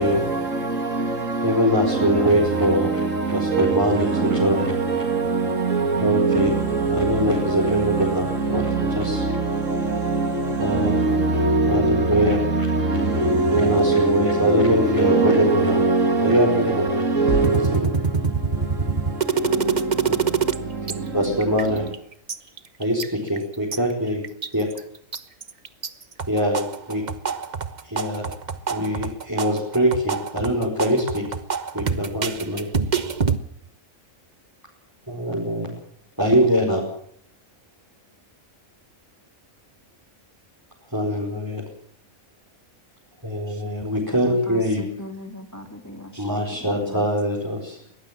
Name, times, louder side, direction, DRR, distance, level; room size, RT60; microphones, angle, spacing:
voice 1, 0.0-21.9, right 3 dB, 65° right, 2.6 m, -23 dB
voice 2, 1.4-2.9 3.3-4.7 6.0-6.5 6.9-8.7 8.9-9.2 10.6-10.9 11.7-12.4 13.5-15.8 16.2-17.0 17.5-17.9 20.1-20.2 21.1-21.8 22.8-23.0 23.3-24.2 24.5-24.7 26.3-27.0 27.8-28.2 28.7-31.2 31.7-32.7 35.1-35.7 36.2-36.8 40.9-41.6 43.2-44.8 46.2-47.8, equal, 15° right, 4.8 m, -22 dB
sound 1, 17.3-20.6 20.9-21.0 21.2-21.9 22.3-23.8 24.2-24.8 25.1-25.9 26.2-33.4, right 6 dB, 35° right, 1.1 m, -25 dB
voice 3, 44.1-47.1, left 1 dB, 10° left, 2.5 m, -40 dB
22.0 x 18.5 x 7.4 m
omnidirectional pair, 1.4 m